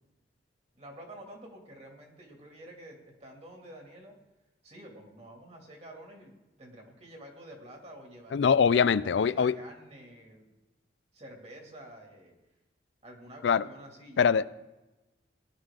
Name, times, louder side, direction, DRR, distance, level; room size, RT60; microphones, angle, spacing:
voice 1, 0.7-4.2 4.6-10.5 11.1-12.3 13.0-14.3, right 1 dB, 35° right, 1 dB, 2.4 m, -49 dB
voice 2, 8.3-9.6 13.4-13.6 14.2-14.5, left 6 dB, 80° left, 17 dB, 0.4 m, -23 dB
18.0 x 11.0 x 3.7 m, 1.0 s
head